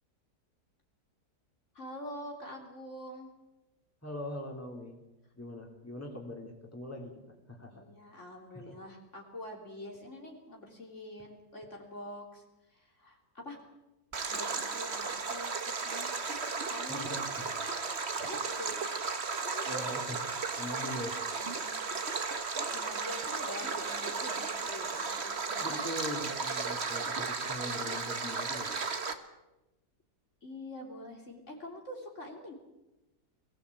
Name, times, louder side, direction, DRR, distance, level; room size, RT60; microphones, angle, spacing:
voice 1, 1.7-3.3 7.7-13.6 14.3-16.4 16.7-17.1 18.2-18.8 19.4-19.9 20.6-20.9 21.4-22.0 22.7-25.8 30.4-32.5, left 1 dB, 45° left, 1 dB, 3.6 m, -45 dB
voice 2, 4.0-5.0 5.3-7.1 7.5-7.8 8.7-8.8 16.9-17.5 19.7-20.2 20.6-21.2 25.6-28.7, left 1 dB, 10° left, 1 dB, 3.4 m, -41 dB
Stream, 14.1-29.1, right 4 dB, 40° right, 1.7 m, -35 dB
23.0 x 17.5 x 8.4 m, 1.0 s
omnidirectional pair, 1.7 m